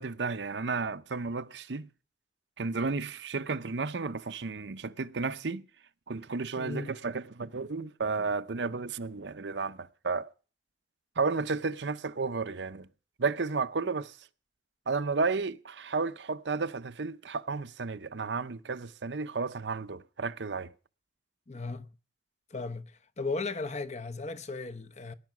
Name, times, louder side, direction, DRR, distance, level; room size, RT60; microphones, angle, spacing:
voice 1, 0.0-1.9 2.6-5.7 6.1-10.3 11.2-12.9 13.2-14.2 14.9-20.7, right 4 dB, 80° right, 0.8 m, -32 dB
voice 2, 6.6-6.9 21.5-21.9 22.5-25.1, left 3 dB, 40° left, 0.9 m, -36 dB
18.5 x 10.5 x 6.0 m
head